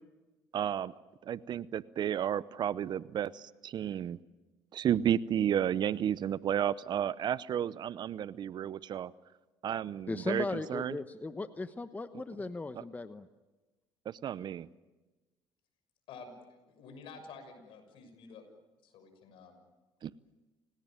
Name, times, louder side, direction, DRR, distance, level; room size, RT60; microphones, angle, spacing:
voice 1, 0.5-0.9 1.2-4.2 4.7-9.1 9.6-11.0 14.1-14.7 20.0-20.1, right 10 dB, 50° right, 18 dB, 0.7 m, -32 dB
voice 2, 10.1-13.3, left 3 dB, 15° left, 10 dB, 1.1 m, -37 dB
voice 3, 16.1-18.4 18.8-19.6, left 4 dB, 65° left, 7 dB, 6.4 m, -50 dB
28.5 x 18.5 x 9.1 m, 1.2 s
supercardioid pair, 80°, 9 cm